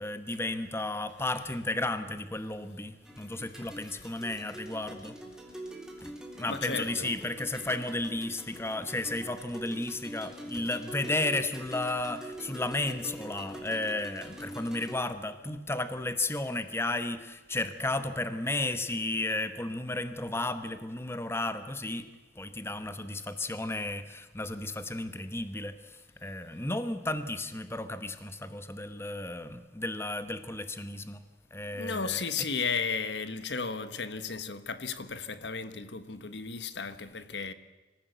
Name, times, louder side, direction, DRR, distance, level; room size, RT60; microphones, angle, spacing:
voice 1, 0.0-5.2 6.0-22.1 22.4-31.2 31.5-32.2, left 2 dB, 15° left, 1.1 m, -33 dB
sound 1, 3.0-15.0, right 1 dB, 5° right, 3.4 m, -44 dB
voice 2, 6.5-7.1 31.7-37.5, left 5 dB, 75° left, 1.3 m, -34 dB
25.5 x 15.5 x 8.0 m
head